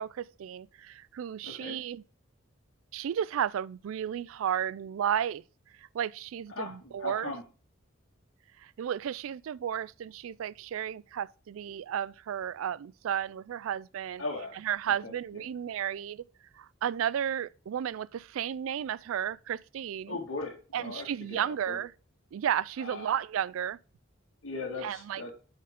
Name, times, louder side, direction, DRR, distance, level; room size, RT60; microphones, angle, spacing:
voice 1, 0.0-2.0 2.9-5.4 5.8-7.3 8.6-14.2 14.5-16.2 16.6-20.2 20.7-21.9 22.3-23.8 24.8-25.2, right 9 dB, 85° right, 0.3 m, -33 dB
voice 2, 1.4-1.8 6.6-7.4 14.2-14.6 15.0-15.1 20.1-21.8 22.8-23.1 24.4-25.3, left 3 dB, 70° left, 1.8 m, -38 dB
8.3 x 4.5 x 3.6 m
head